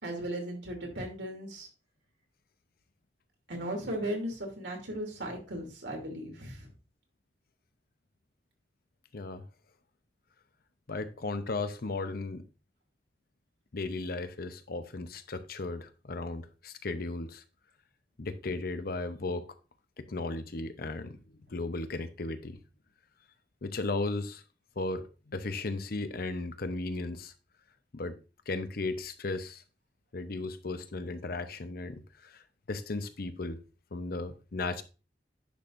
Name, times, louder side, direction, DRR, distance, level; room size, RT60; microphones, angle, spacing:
voice 1, 0.0-1.7 3.5-6.7, right 1 dB, 90° right, 2.9 m, -36 dB
voice 2, 9.1-9.4 10.9-12.4 13.7-17.4 18.2-19.5 20.0-21.2 21.5-22.6 23.6-24.4 24.8-27.3 27.9-28.2 28.5-29.6 30.1-32.4 32.7-33.6 33.9-34.8, left 3 dB, 60° left, 0.8 m, -35 dB
10.0 x 6.1 x 2.6 m
head